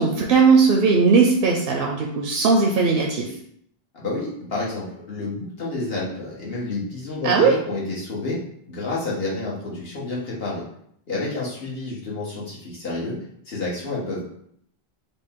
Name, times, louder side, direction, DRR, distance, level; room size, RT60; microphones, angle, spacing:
voice 1, 0.0-3.4 7.2-7.5, right 4 dB, 70° right, 1 dB, 0.7 m, -18 dB
voice 2, 3.9-8.4 8.7-10.6 11.1-13.2 13.4-14.2, left 2 dB, 70° left, -5 dB, 1.5 m, -29 dB
5.1 x 2.1 x 3.6 m, 0.69 s
omnidirectional pair, 1.0 m